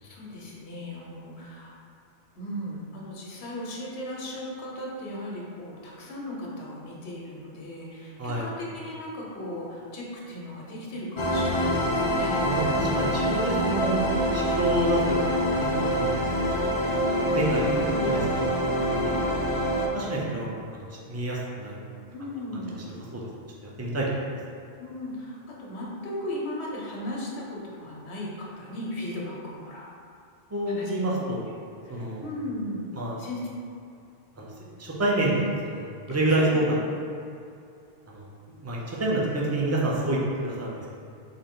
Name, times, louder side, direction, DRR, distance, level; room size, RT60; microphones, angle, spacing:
voice 1, 0.0-1.8 2.4-12.4 17.6-18.2 22.1-22.9 24.8-29.9 30.7-31.2 31.8-33.4 36.1-36.2 36.4-36.6 36.8-36.9, left 1 dB, 90° left, -3 dB, 1.0 m, -37 dB
sound 1, 11.2-19.9, equal, 50° left, 0.4 m, -25 dB
voice 2, 12.4-14.0 14.3-17.0 17.3-18.2 18.7-18.8 19.4-19.5 19.9-21.8 22.5-22.6 23.1-23.3 23.6-24.0 30.5-31.4 31.9-32.2 32.9-33.2 34.4-34.5 34.8-36.8 38.1-38.3 38.6-40.9, right 1 dB, 25° right, -4 dB, 0.4 m, -28 dB
3.7 x 2.6 x 3.6 m, 2.4 s
omnidirectional pair, 1.1 m